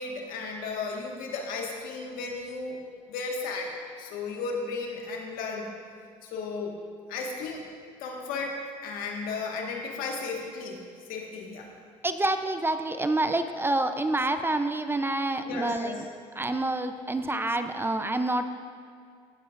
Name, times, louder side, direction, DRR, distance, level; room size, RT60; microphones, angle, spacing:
voice 1, 0.0-2.8 3.1-5.7 6.2-6.8 7.1-7.6 8.0-10.8 11.1-11.7 15.4-16.0, left 4 dB, 75° left, 0 dB, 1.6 m, -34 dB
voice 2, 12.0-15.9 16.4-18.4, right 2 dB, 15° right, 8 dB, 0.6 m, -27 dB
17.5 x 7.6 x 2.5 m, 2.2 s
supercardioid pair, 80°, 15 cm